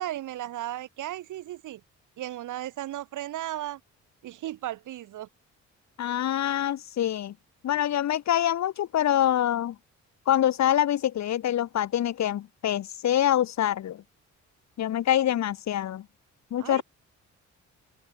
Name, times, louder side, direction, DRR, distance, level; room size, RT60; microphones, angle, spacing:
voice 1, 0.0-1.8 2.2-3.8 4.2-5.3 16.6-16.8, right 13 dB, 80° right, 4.6 m, -35 dB
voice 2, 6.0-7.3 7.6-9.7 10.3-14.0 14.8-16.0 16.5-16.8, left 11 dB, 65° left, 1.5 m, -25 dB
open air
cardioid pair, 90°, 30 cm